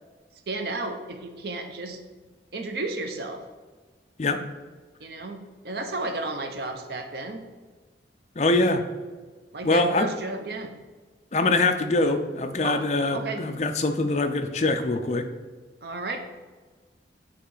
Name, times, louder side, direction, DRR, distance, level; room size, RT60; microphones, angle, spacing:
voice 1, 0.5-2.0 2.5-3.4 5.0-5.4 5.6-7.5 9.5-10.7 12.6-13.4 15.8-16.2, right 2 dB, 55° right, 6 dB, 0.6 m, -33 dB
voice 2, 8.4-8.8 9.6-10.1 11.3-15.3, left 2 dB, 35° left, 6 dB, 0.4 m, -23 dB
8.4 x 3.2 x 3.9 m, 1.3 s
head